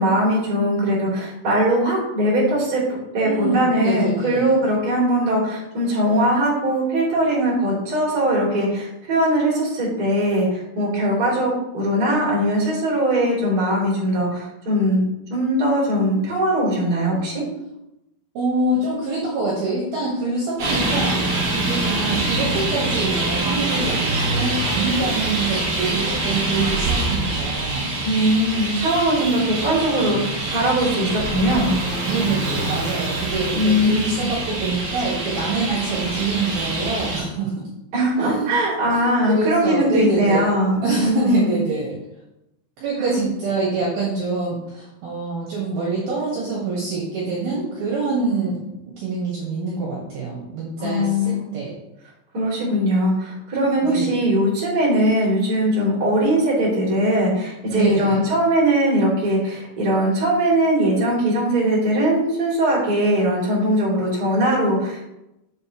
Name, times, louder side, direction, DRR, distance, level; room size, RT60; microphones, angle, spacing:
voice 1, 0.0-2.8 3.1-17.4 28.0-31.7 33.5-34.3 37.9-41.6 43.0-43.2 50.8-51.5 52.3-65.0, equal, 25° right, -6 dB, 2.6 m, -20 dB
voice 2, 3.2-4.5 18.3-21.2 21.5-27.9 32.0-37.5 38.2-38.5 38.9-39.0 39.3-40.5 40.8-42.0 42.8-48.6 49.0-51.7 53.8-54.1 57.7-58.3, right 3 dB, 65° right, -5 dB, 2.8 m, -25 dB
Traffic noise roadway noise, 20.6-37.2, right 2 dB, 40° right, 2.1 m, -25 dB
7.7 x 7.4 x 3.0 m, 0.89 s
omnidirectional pair, 5.6 m